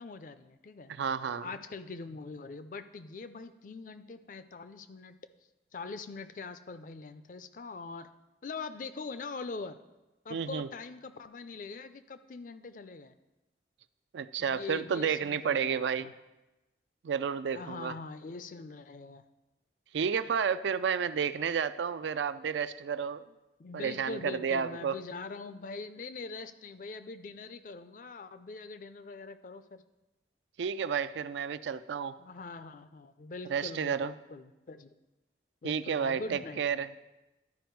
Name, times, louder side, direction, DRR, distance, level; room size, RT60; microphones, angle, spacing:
voice 1, 0.0-0.9 1.4-5.1 5.7-8.1 8.4-9.8 10.2-13.1 14.4-16.1 17.5-19.2 23.6-29.8 32.2-34.9 35.6-36.8, left 4 dB, 50° left, 12 dB, 0.4 m, -43 dB
voice 2, 0.9-1.5 10.3-10.7 14.1-16.1 17.0-17.9 19.9-23.2 23.7-25.0 30.6-32.1 33.5-34.1 35.6-37.0, right 6 dB, 90° right, 13 dB, 0.4 m, -31 dB
12.0 x 5.1 x 4.6 m, 1.0 s
head